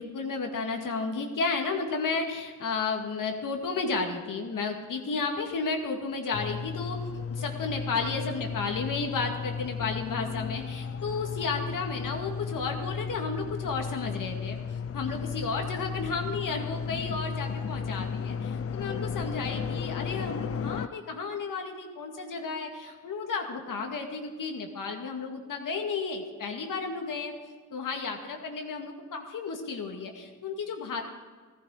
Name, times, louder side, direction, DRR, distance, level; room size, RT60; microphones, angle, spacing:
voice 1, 0.0-14.6 14.9-27.3 27.7-31.0, left 4 dB, 75° left, 3 dB, 2.2 m, -33 dB
sound 1, 6.3-20.9, left 6 dB, 45° left, 0.6 m, -34 dB
15.0 x 14.5 x 5.0 m, 1.5 s
cardioid pair, 80°, 32 cm